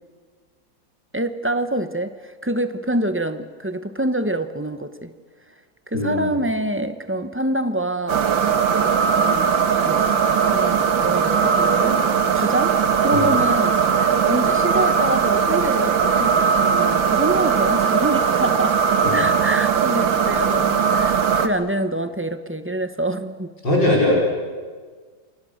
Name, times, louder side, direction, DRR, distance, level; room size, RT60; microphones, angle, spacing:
voice 1, 1.1-5.1 5.9-8.2 9.1-9.5 9.8-10.1 10.5-12.0 12.3-12.8 13.0-13.8 14.2-18.8 19.1-23.5, right 1 dB, 10° right, 9 dB, 0.8 m, -26 dB
voice 2, 5.9-6.3 13.1-13.3 19.0-19.3 23.6-24.2, left 1 dB, 70° left, -3 dB, 5.7 m, -20 dB
sound 1, 8.1-21.5, right 6 dB, 90° right, 2.1 m, -19 dB
28.5 x 25.5 x 6.6 m, 1.5 s
omnidirectional pair, 2.1 m